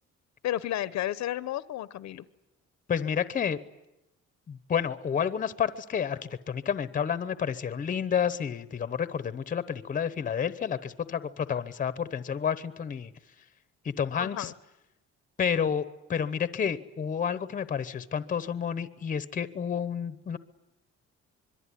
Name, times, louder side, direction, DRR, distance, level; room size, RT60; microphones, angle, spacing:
voice 1, 0.4-2.2 14.2-14.5, left 13 dB, 70° left, 16 dB, 0.9 m, -32 dB
voice 2, 2.9-3.6 4.5-13.1 13.8-14.5 15.4-15.8 16.1-20.4, left 7 dB, 30° left, 14 dB, 0.9 m, -30 dB
25.5 x 22.5 x 10.0 m, 0.90 s
cardioid pair, 175°, 29 cm